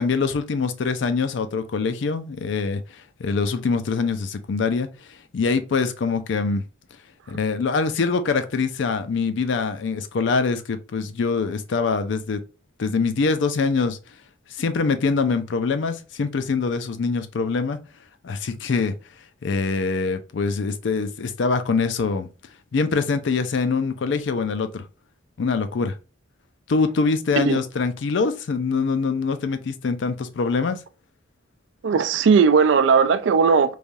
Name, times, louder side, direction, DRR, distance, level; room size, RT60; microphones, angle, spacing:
voice 1, 0.0-2.8 3.2-4.9 5.3-6.6 7.3-12.4 12.8-14.0 14.6-17.8 18.2-18.9 19.4-22.3 22.7-24.8 25.4-25.9 26.7-30.8, left 4 dB, 70° left, 0.4 m, -24 dB
voice 2, 31.8-33.8, right 5 dB, 70° right, 0.3 m, -17 dB
3.2 x 2.3 x 2.5 m
head